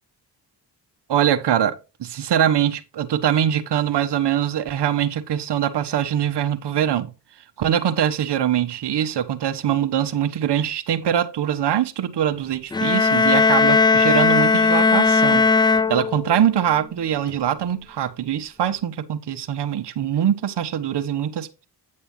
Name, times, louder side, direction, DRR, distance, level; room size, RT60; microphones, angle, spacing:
voice 1, 1.1-7.1 7.6-15.5 15.9-21.5, right 10 dB, 70° right, 1.3 m, -23 dB
sound 1, 12.7-16.5, left 4 dB, 10° left, 0.3 m, -17 dB
9.8 x 6.8 x 3.2 m
supercardioid pair, 55°, 42 cm